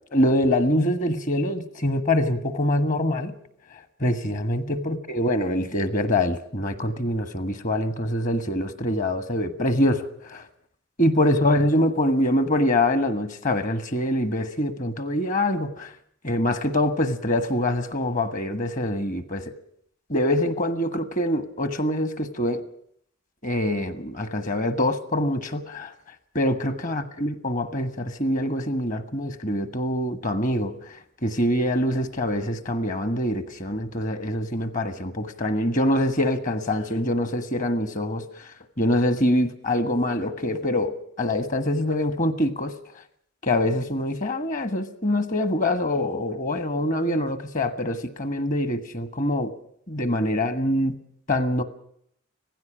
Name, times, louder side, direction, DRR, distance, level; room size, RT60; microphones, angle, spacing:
voice 1, 0.1-3.3 4.0-10.4 11.0-15.9 16.2-19.4 20.1-22.6 23.4-25.9 26.3-30.7 31.2-38.2 38.8-42.7 43.4-49.5 49.9-50.9 51.3-51.6, left 1 dB, 40° left, 1.4 m, -24 dB
17.0 x 15.5 x 10.0 m
head